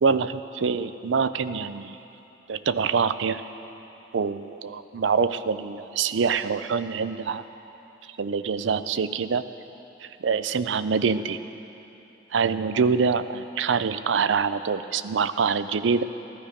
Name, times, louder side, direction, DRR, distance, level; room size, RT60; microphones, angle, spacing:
voice 1, 0.0-2.0 2.5-3.4 4.1-7.4 8.2-9.4 10.2-11.4 12.3-16.0, right 5 dB, 90° right, 12 dB, 0.5 m, -25 dB
14.5 x 14.0 x 5.1 m, 3.0 s
head